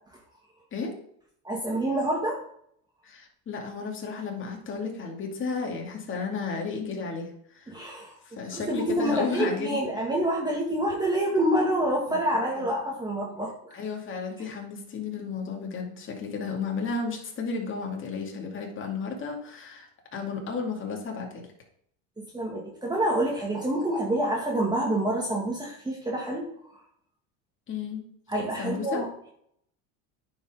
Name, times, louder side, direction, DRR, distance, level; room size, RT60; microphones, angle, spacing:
voice 1, 1.4-2.4 7.7-8.1 8.5-13.8 22.2-26.4 28.3-29.1, right 1 dB, 10° right, -3 dB, 2.0 m, -27 dB
voice 2, 3.0-7.7 8.2-9.8 12.1-12.2 12.5-12.7 13.7-21.5 27.7-28.0 28.6-29.0, left 4 dB, 30° left, 1 dB, 2.4 m, -33 dB
9.6 x 5.3 x 4.9 m, 0.68 s
supercardioid pair, 115°, 38 cm